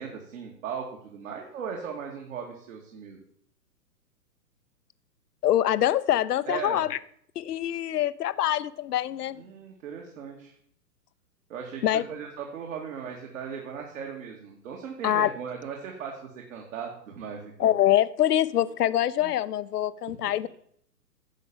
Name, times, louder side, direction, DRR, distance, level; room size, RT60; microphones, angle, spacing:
voice 1, 0.0-3.2 6.5-6.9 9.4-10.5 11.5-17.7, right 7 dB, 50° right, 2.4 m, -38 dB
voice 2, 5.4-7.0 7.4-9.4 11.8-12.0 15.0-15.3 17.6-20.5, left 12 dB, 70° left, 0.7 m, -24 dB
10.5 x 6.7 x 7.2 m
hypercardioid pair, 125°, 49 cm